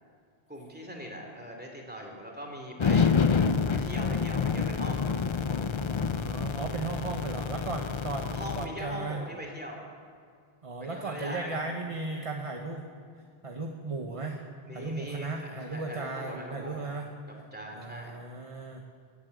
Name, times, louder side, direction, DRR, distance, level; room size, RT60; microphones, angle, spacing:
voice 1, 0.5-3.1 3.7-5.0 8.3-9.8 10.8-11.6 12.1-12.3 14.7-16.9 17.5-18.2, equal, 10° right, 0 dB, 2.6 m, -41 dB
sound 1, 2.8-8.7, left 5 dB, 40° left, 0.5 m, -27 dB
voice 2, 6.0-9.2 10.6-12.9 13.4-14.4 14.7-17.1 17.7-18.8, right 3 dB, 35° right, 2 dB, 1.0 m, -36 dB
17.5 x 8.7 x 7.8 m, 2.2 s
omnidirectional pair, 1.0 m